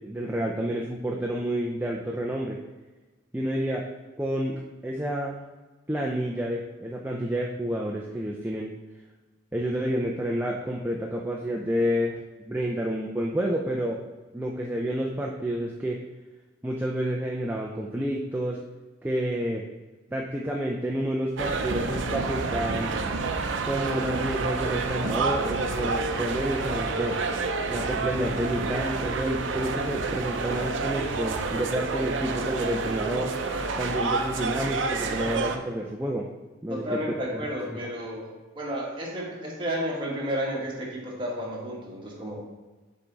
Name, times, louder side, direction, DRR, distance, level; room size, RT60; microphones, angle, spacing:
voice 1, 0.0-2.6 3.3-3.8 4.2-5.4 5.9-8.7 9.5-16.0 16.6-18.6 19.0-19.6 20.1-23.1 23.6-27.2 27.7-33.3 33.8-36.3 36.6-37.2 37.7-37.8, equal, 10° right, -2 dB, 0.5 m, -29 dB
sound 1, 21.4-35.6, right 4 dB, 75° right, 0.6 m, -29 dB
voice 2, 36.7-38.3 38.5-42.4, equal, 25° right, -4 dB, 1.7 m, -32 dB
7.1 x 4.6 x 4.0 m, 1.2 s
head